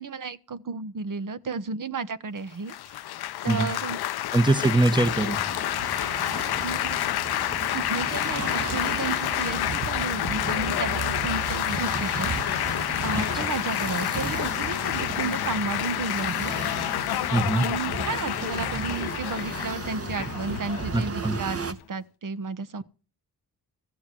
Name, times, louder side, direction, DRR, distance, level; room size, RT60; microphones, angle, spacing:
voice 1, 0.0-3.0 3.4-4.0 6.6-7.2 7.6-12.3 13.0-16.6 17.5-22.8, right 4 dB, 50° right, 1.3 m, -33 dB
Laughter / Applause / Chatter, 2.7-21.8, left 14 dB, 65° left, 0.6 m, -29 dB
voice 2, 4.3-5.4 13.1-13.5 17.3-17.7 20.9-21.4, right 2 dB, 10° right, 1.2 m, -23 dB
sound 1, 5.0-21.7, right 4 dB, 35° right, 1.5 m, -35 dB
15.0 x 7.1 x 7.8 m
supercardioid pair, 55°, 41 cm